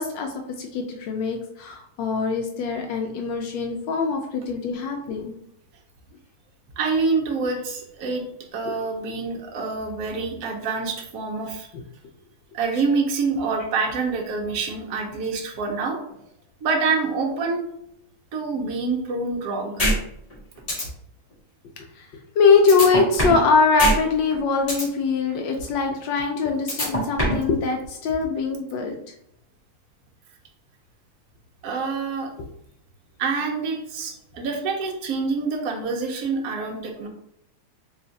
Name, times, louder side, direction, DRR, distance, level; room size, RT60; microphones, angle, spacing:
voice 1, 0.0-5.4 8.7-8.8 22.0-22.1 22.4-29.0, left 4 dB, 75° left, 3 dB, 1.1 m, -22 dB
voice 2, 6.8-8.2 8.5-11.7 12.5-16.0 16.6-17.6 18.3-19.9 31.6-32.3 33.2-37.1, right 4 dB, 65° right, 1 dB, 0.9 m, -26 dB
sound 1, 19.8-19.9 20.3-20.4 20.7-20.8 22.7-23.4 23.8-23.9 24.3-24.8 26.7-27.4, left 1 dB, 40° left, 0.5 m, -22 dB
3.4 x 2.4 x 3.9 m, 0.76 s
omnidirectional pair, 2.4 m